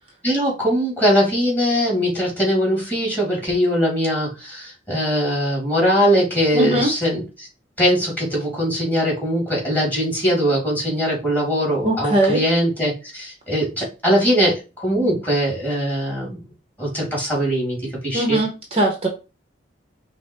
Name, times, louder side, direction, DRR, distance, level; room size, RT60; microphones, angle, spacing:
voice 1, 0.2-7.5 7.8-16.4 16.8-17.8 18.0-18.4, equal, 10° left, -4 dB, 2.4 m, -21 dB
voice 2, 6.5-6.9 11.8-12.4 18.1-19.1, right 1 dB, 30° right, 1 dB, 0.9 m, -20 dB
5.7 x 2.1 x 4.3 m, 0.30 s
head